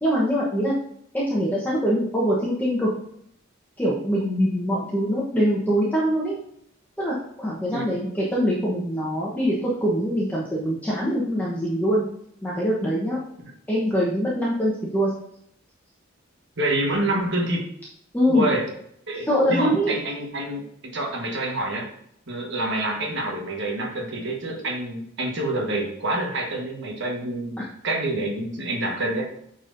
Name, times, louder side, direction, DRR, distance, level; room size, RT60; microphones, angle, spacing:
voice 1, 0.0-0.7 1.1-2.9 3.8-6.4 7.0-12.1 12.4-13.2 13.7-15.1 18.1-18.5 19.2-20.0, equal, 10° left, -7 dB, 1.0 m, -23 dB
voice 2, 16.6-17.7 18.3-18.7 19.1-21.9 22.3-27.5 27.8-29.2, right 1 dB, 65° right, 0 dB, 1.4 m, -27 dB
8.6 x 4.3 x 2.6 m, 0.70 s
head